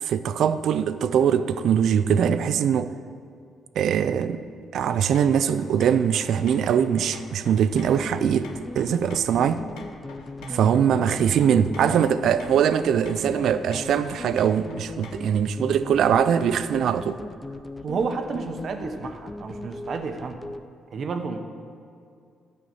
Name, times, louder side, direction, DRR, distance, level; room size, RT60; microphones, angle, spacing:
voice 1, 0.0-2.9 3.8-4.4 4.7-9.7 10.5-17.2, right 8 dB, 70° right, 13 dB, 0.4 m, -22 dB
sound 1, 4.8-15.4, left 4 dB, 85° left, 1.0 m, -46 dB
sound 2, 7.7-20.6, left 2 dB, 20° left, 0.4 m, -38 dB
voice 2, 17.8-20.4 20.9-21.4, right 4 dB, 55° right, 6 dB, 1.0 m, -31 dB
10.5 x 5.7 x 7.9 m, 2.3 s
cardioid pair, 90°, 0 cm